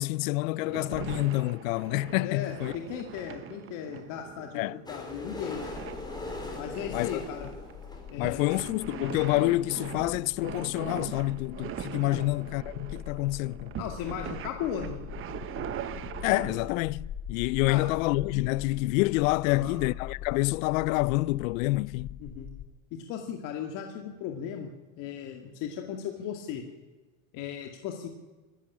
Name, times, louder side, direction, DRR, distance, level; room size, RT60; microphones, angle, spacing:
voice 1, 0.0-2.7 4.5-4.8 6.9-7.2 8.2-13.8 16.2-22.2, left 20 dB, 70° left, 0.6 m, -28 dB
sound 1, 0.5-16.9, right 9 dB, 30° right, 1.2 m, -41 dB
voice 2, 2.2-5.7 6.6-7.5 8.1-8.5 12.1-12.2 13.8-15.0 17.7-17.8 19.5-19.8 22.2-22.5 22.9-24.7 25.0-26.6 27.3-28.1, left 8 dB, 50° left, 2.3 m, -36 dB
sound 2, 4.9-8.7 9.4-9.5 9.7-9.8 9.9-10.1 10.4-10.5, left 2 dB, 10° left, 4.4 m, -40 dB
sound 3, 5.5-22.7, left 9 dB, 35° left, 1.3 m, -44 dB
25.5 x 12.0 x 9.9 m
supercardioid pair, 135°, 41 cm